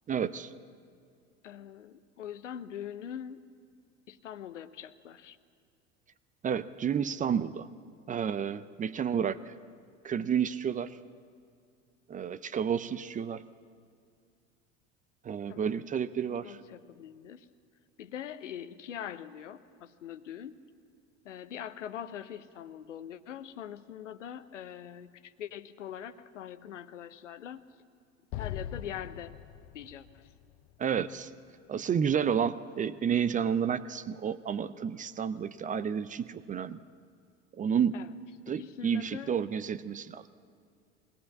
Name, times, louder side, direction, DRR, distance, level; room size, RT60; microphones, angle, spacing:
voice 1, 0.1-0.5 6.4-7.7 8.1-9.5 10.0-11.0 12.1-13.4 15.2-16.6 30.8-31.3 31.7-36.8 37.6-37.9 38.5-40.3, right 7 dB, 20° right, 15 dB, 0.5 m, -30 dB
voice 2, 1.4-3.4 4.1-5.4 15.5-15.9 16.3-17.5 18.0-20.6 21.2-27.6 28.4-29.4 29.7-30.3 35.8-35.9 37.9-38.1 38.6-39.3, left 9 dB, 80° left, 12 dB, 0.9 m, -43 dB
Explosion, 28.3-31.6, left 10 dB, 50° left, 0.7 m, -42 dB
20.5 x 18.0 x 7.3 m, 2.3 s
hypercardioid pair, 75°, 36 cm